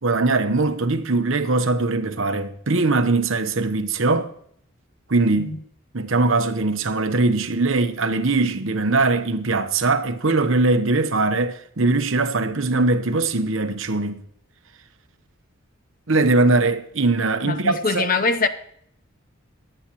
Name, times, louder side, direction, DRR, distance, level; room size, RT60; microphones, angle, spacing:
voice 1, 0.0-4.3 5.1-5.6 5.9-14.2 16.1-18.1, right 3 dB, 70° right, 1.0 m, -21 dB
voice 2, 17.4-18.5, left 4 dB, 40° left, 0.8 m, -22 dB
21.5 x 8.8 x 3.1 m
head